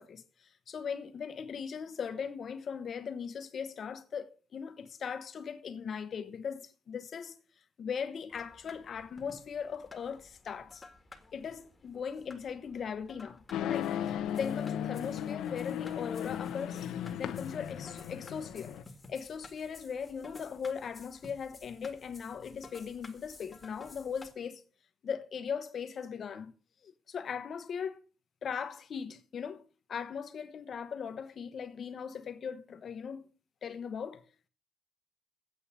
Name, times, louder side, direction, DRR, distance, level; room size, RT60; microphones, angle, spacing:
voice 1, 0.0-7.4 7.8-10.8 11.3-16.9 17.2-18.8 19.1-24.6 25.0-26.5 26.8-28.0 28.4-29.6 29.9-33.3 33.6-34.2, left 6 dB, 55° left, 1.0 m, -39 dB
sound 1, 8.3-24.3, left 3 dB, 25° left, 1.8 m, -54 dB
sound 2, 13.5-18.8, left 10 dB, 80° left, 0.9 m, -36 dB
8.6 x 7.8 x 7.4 m
cardioid pair, 90°, 0 cm